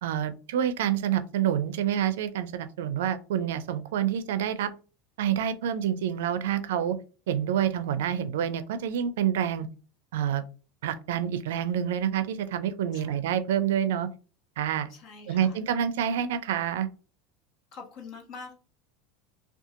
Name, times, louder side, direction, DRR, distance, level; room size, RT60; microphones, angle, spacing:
voice 1, 0.0-4.7 5.2-7.0 7.3-9.7 10.1-10.4 10.8-14.1 14.6-14.9 15.3-16.9, right 9 dB, 80° right, 11 dB, 0.4 m, -27 dB
voice 2, 14.9-15.6 17.7-18.5, left 4 dB, 55° left, 2 dB, 1.1 m, -45 dB
2.7 x 2.3 x 2.4 m, 0.34 s
supercardioid pair, 105°, 0 cm